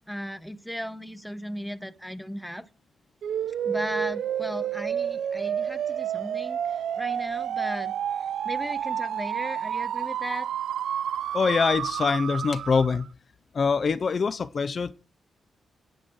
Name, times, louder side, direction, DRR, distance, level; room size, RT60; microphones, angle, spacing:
voice 1, 0.1-2.7 3.6-6.6 7.0-7.9 8.4-10.5, equal, ahead, 0.7 m, -36 dB
sound 1, 3.2-13.1, right 9 dB, 80° right, 0.5 m, -30 dB
voice 2, 11.3-13.1 13.5-14.9, left 5 dB, 40° left, 0.5 m, -24 dB
9.3 x 8.7 x 4.6 m
wide cardioid pair, 130°, 0 cm